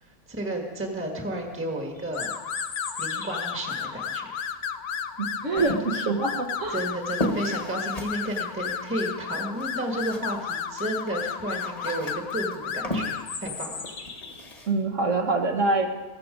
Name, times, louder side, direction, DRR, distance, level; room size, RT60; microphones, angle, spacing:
voice 1, 0.0-2.4 3.0-4.3 6.7-13.1 13.4-13.8, right 1 dB, 10° right, 1 dB, 1.5 m, -32 dB
sound 1, 1.9-3.8 8.3-8.4 8.8-9.2 11.3-11.4 11.7-12.0 13.2-14.5, left 5 dB, 90° left, 1.8 m, -39 dB
sound 2, 2.1-13.4, left 7 dB, 55° left, 0.8 m, -33 dB
voice 2, 5.2-6.8 14.7-16.0, right 3 dB, 60° right, 4 dB, 1.7 m, -25 dB
sound 3, 5.6-10.5 10.7-14.7, left 1 dB, 25° left, 1.7 m, -35 dB
15.5 x 14.5 x 5.2 m, 1.3 s
omnidirectional pair, 1.5 m